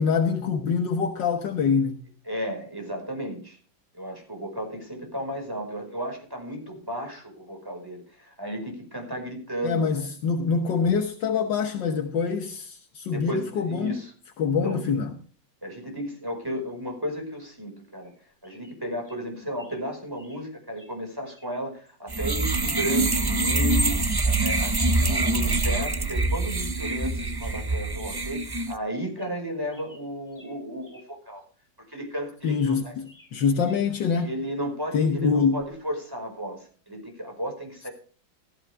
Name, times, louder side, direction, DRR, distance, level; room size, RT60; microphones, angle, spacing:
voice 1, 0.0-2.0 9.6-13.9 14.4-15.1 32.4-34.3 34.9-35.6, left 5 dB, 75° left, 1.7 m, -25 dB
voice 2, 2.3-3.6 3.9-10.1 13.1-14.1 14.6-14.8 15.6-18.1 18.4-31.4 31.8-32.9 33.7-33.8 34.2-37.9, equal, 10° right, 5.2 m, -34 dB
sound 1, 18.0-18.2 18.4-18.8 19.0-19.2 19.6-19.9 20.2-20.5 20.8-20.9 21.3-21.5 21.9-22.0 22.5-22.8 23.1-24.0 24.3-24.5 24.8-25.0 25.3-25.4 25.8-26.0 26.3-27.1 27.4-27.7 27.9-28.2 28.6-28.7 29.1-29.4 29.7-31.1 31.4-31.5 32.0-33.4 33.6-34.4 35.6-35.8, equal, 10° left, 6.6 m, -56 dB
sound 2, 22.1-28.7, right 2 dB, 40° right, 0.3 m, -25 dB
15.5 x 14.5 x 3.4 m
omnidirectional pair, 2.0 m